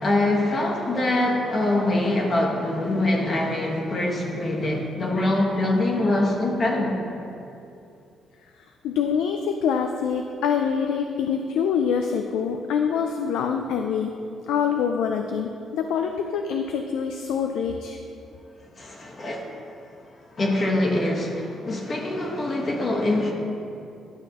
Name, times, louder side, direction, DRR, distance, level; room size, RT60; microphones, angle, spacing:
voice 1, 0.0-7.0 18.8-19.5 20.4-23.3, left 1 dB, 40° left, -1 dB, 1.3 m, -24 dB
voice 2, 8.8-14.1 14.5-18.0, left 7 dB, 90° left, 5 dB, 0.4 m, -25 dB
11.0 x 5.8 x 2.9 m, 2.6 s
cardioid pair, 90°, 0 cm